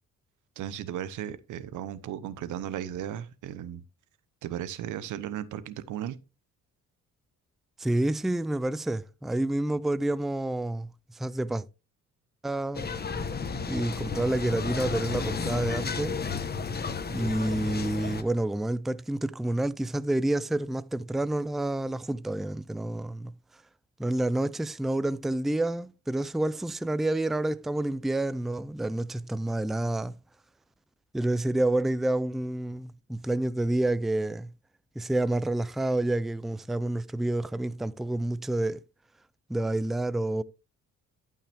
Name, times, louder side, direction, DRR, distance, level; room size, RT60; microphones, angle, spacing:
voice 1, 0.6-3.8 4.4-6.2, right 10 dB, 85° right, 0.9 m, -36 dB
voice 2, 7.8-11.6 12.4-12.9 13.7-16.2 17.1-23.3 24.0-30.1 31.1-34.5 35.0-38.8 39.5-40.4, right 1 dB, ahead, 0.4 m, -29 dB
sound 1, 12.7-18.2, left 5 dB, 30° left, 1.1 m, -32 dB
12.0 x 5.6 x 3.4 m
cardioid pair, 90°, 30 cm